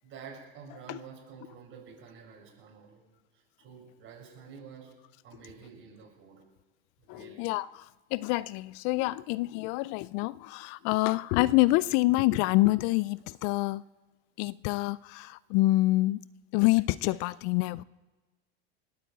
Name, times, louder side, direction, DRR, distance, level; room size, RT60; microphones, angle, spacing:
voice 1, 0.0-3.0 3.6-4.9 5.2-6.4 7.0-7.5, right 6 dB, 40° right, 7.3 m, -49 dB
voice 2, 7.1-13.8 14.4-16.2 16.5-17.8, left 19 dB, 50° left, 0.4 m, -27 dB
20.0 x 8.8 x 8.0 m
hypercardioid pair, 105°, 31 cm